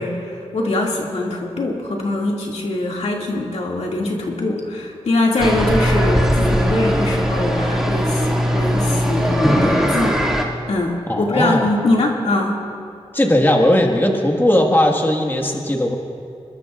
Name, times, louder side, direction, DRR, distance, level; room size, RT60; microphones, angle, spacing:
voice 1, 0.0-10.2 10.7-12.6, left 2 dB, 75° left, -1 dB, 2.3 m, -22 dB
sound 1, 5.4-10.4, equal, 5° right, 2.3 m, -19 dB
voice 2, 11.1-11.7 13.1-16.0, left 1 dB, 20° left, 1 dB, 1.7 m, -17 dB
26.0 x 21.0 x 2.5 m, 2.5 s
wide cardioid pair, 80°, 11 cm